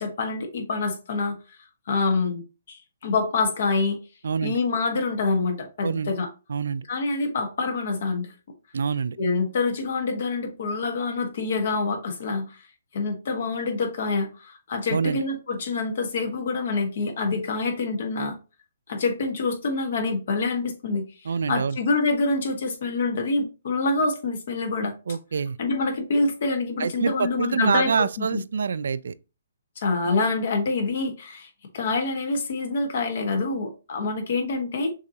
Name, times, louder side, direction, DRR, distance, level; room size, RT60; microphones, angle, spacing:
voice 1, 0.0-1.4 1.9-4.0 4.4-6.3 6.9-8.3 9.2-12.6 12.9-18.4 18.9-24.9 25.6-28.4 29.8-34.9, left 3 dB, 60° left, 1.3 m, -26 dB
voice 2, 4.2-4.6 5.8-6.1 6.5-6.9 8.7-9.2 14.9-15.2 21.2-21.8 25.1-25.6 26.8-29.1, right 6 dB, 75° right, 0.3 m, -26 dB
6.3 x 2.9 x 2.8 m
hypercardioid pair, 155°, 0 cm